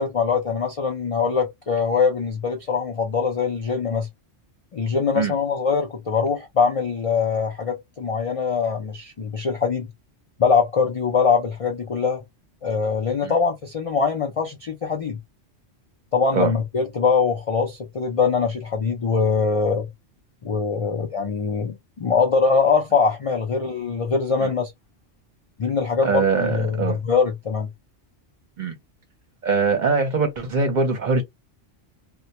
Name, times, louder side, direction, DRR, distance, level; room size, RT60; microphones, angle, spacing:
voice 1, 0.0-4.1 4.7-9.9 10.4-12.2 12.6-15.2 16.1-19.9 20.4-24.7 25.6-27.7, left 5 dB, 65° left, 0.3 m, -22 dB
voice 2, 26.0-27.0 28.6-28.7 29.4-31.2, right 4 dB, 45° right, 0.7 m, -22 dB
2.2 x 2.1 x 2.7 m
omnidirectional pair, 1.3 m